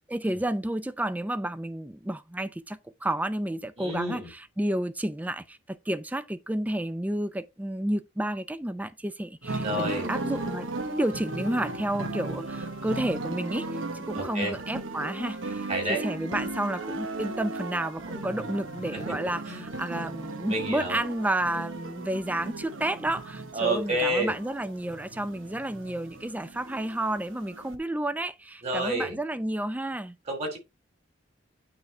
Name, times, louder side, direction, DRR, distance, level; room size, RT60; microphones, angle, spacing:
voice 1, 0.1-13.7 13.9-30.2, right 1 dB, 10° right, 0.4 m, -31 dB
voice 2, 3.8-4.3 9.6-10.1 14.1-14.6 15.7-16.0 19.1-19.2 19.5-19.7 20.5-21.0 23.5-24.3 28.6-29.2 30.3-30.6, right 1 dB, 35° right, 2.8 m, -29 dB
sound 1, 9.4-27.8, right 2 dB, 90° right, 1.1 m, -36 dB
8.9 x 3.6 x 4.3 m
head